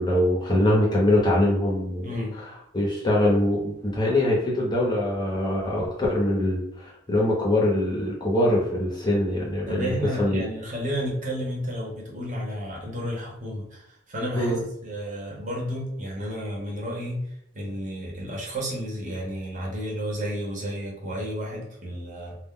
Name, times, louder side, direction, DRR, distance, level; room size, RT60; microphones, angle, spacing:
voice 1, 0.0-2.1 2.4-2.5 2.7-10.4 14.4-14.6, left 1 dB, 20° left, -4 dB, 0.6 m, -23 dB
voice 2, 2.0-2.4 9.7-14.5 14.8-17.3 17.5-22.3, equal, 40° right, -3 dB, 0.8 m, -31 dB
2.3 x 2.0 x 3.6 m, 0.78 s
head